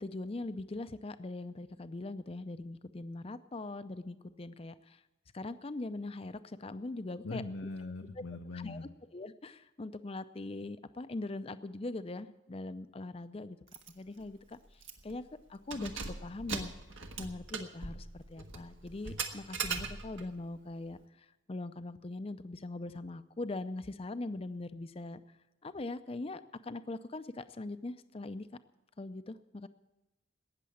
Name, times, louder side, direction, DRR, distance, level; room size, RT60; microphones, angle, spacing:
voice 1, 0.0-5.0 5.3-7.4 8.5-8.8 9.1-13.6 13.9-15.9 16.2-16.7 17.2-25.4 25.6-28.5 29.0-29.7, left 2 dB, 30° left, 12 dB, 0.5 m, -41 dB
voice 2, 7.2-8.9, left 3 dB, 80° left, 4 dB, 0.8 m, -41 dB
Keys jangling, 13.7-13.9 14.2-14.3 14.8-15.2 15.6-20.3, right 5 dB, 80° right, 1.5 m, -40 dB
18.0 x 6.8 x 8.5 m, 1.0 s
head